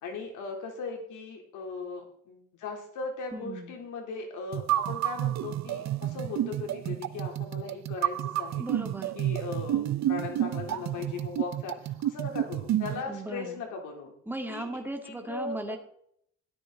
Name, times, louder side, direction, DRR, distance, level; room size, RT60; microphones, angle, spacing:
voice 1, 0.0-8.6 9.1-14.1 14.5-14.7 15.0-15.8, left 4 dB, 85° left, 2 dB, 3.7 m, -38 dB
voice 2, 3.3-3.8 8.6-9.2 13.1-13.6 14.3-15.8, right 1 dB, 5° right, 4 dB, 2.3 m, -37 dB
sound 1, 4.5-13.0, right 12 dB, 65° right, 0.7 m, -30 dB
13.0 x 12.5 x 4.1 m, 0.67 s
cardioid pair, 90°, 30 cm